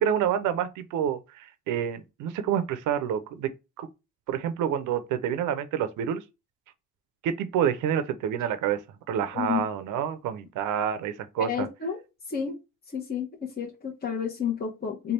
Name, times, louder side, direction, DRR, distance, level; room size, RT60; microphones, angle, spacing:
voice 1, 0.0-3.5 3.8-3.9 4.3-6.2 7.2-8.8 9.1-11.7, right 9 dB, 85° right, 0.6 m, -28 dB
voice 2, 11.4-12.0 12.3-12.6 12.9-15.1, left 7 dB, 30° left, 0.9 m, -31 dB
3.3 x 2.3 x 4.2 m
cardioid pair, 90°, 30 cm